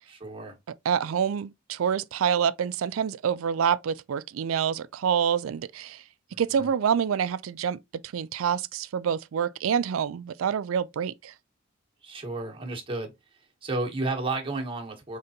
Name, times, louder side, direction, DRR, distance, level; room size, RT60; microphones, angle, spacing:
voice 1, 0.1-0.6 6.3-6.7 12.0-15.2, right 2 dB, 25° right, 1.1 m, -33 dB
voice 2, 0.9-6.0 6.4-7.8 8.1-11.3, right 7 dB, 85° right, 0.4 m, -27 dB
5.1 x 3.3 x 2.7 m
head